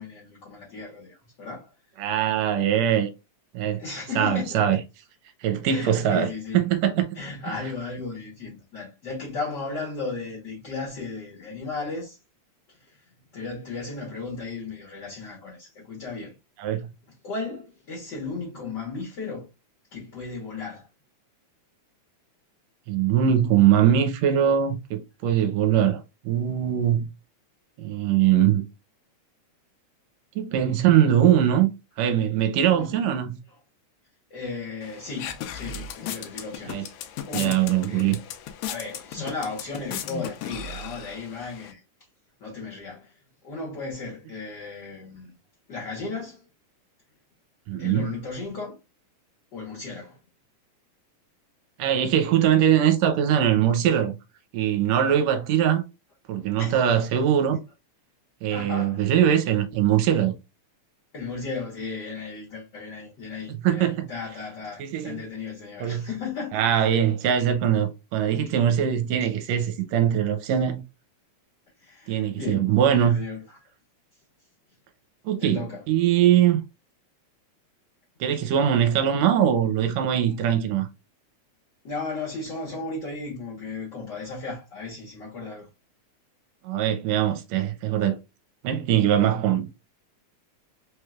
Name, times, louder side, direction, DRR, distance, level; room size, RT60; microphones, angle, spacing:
voice 1, 0.0-1.7 3.8-4.8 5.7-6.6 7.1-12.2 12.9-13.0 13.3-16.3 17.2-19.5 19.9-20.9 32.7-33.0 34.3-36.8 37.3-38.1 38.7-41.8 42.4-43.1 43.4-45.4 45.7-46.4 47.8-48.7 49.5-50.2 56.6-56.9 58.5-59.0 61.1-66.6 71.8-73.4 75.4-75.8 81.8-85.7, left 4 dB, 55° left, 1.2 m, -35 dB
voice 2, 2.0-3.1 3.5-3.8 4.1-4.8 5.4-7.1 16.6-16.9 22.9-27.1 27.8-28.6 30.3-31.7 32.0-33.4 36.7-36.8 37.3-38.2 47.7-48.1 51.8-54.1 54.5-55.8 56.3-57.6 58.4-60.3 63.5-64.1 64.8-65.2 65.8-66.1 66.5-70.8 72.1-73.2 75.2-76.6 78.2-80.9 86.6-88.2 88.6-89.8, right 10 dB, 75° right, 1.8 m, -22 dB
sound 1, 34.8-41.7, left 8 dB, 80° left, 1.9 m, -37 dB
4.6 x 3.2 x 2.3 m
omnidirectional pair, 3.4 m